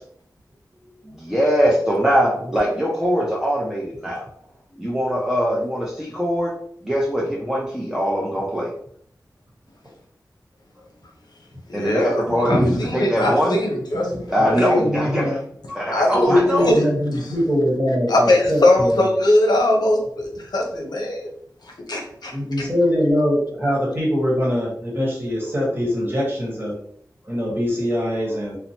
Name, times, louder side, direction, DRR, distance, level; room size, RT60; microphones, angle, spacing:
voice 1, 1.0-4.2 4.8-6.5 6.8-8.7 11.7-13.6 14.3-15.4 15.7-16.7, equal, 5° right, -5 dB, 0.5 m, -22 dB
voice 2, 11.7-14.7 15.9-16.9 18.1-21.2 21.6-22.7, left 1 dB, 75° left, 1 dB, 0.6 m, -21 dB
voice 3, 12.5-12.8 13.2-13.3 13.7-15.4 16.3-19.1 22.3-26.7 27.2-28.6, equal, 30° right, -4 dB, 1.2 m, -23 dB
2.9 x 2.0 x 2.7 m, 0.64 s
wide cardioid pair, 75°, 7 cm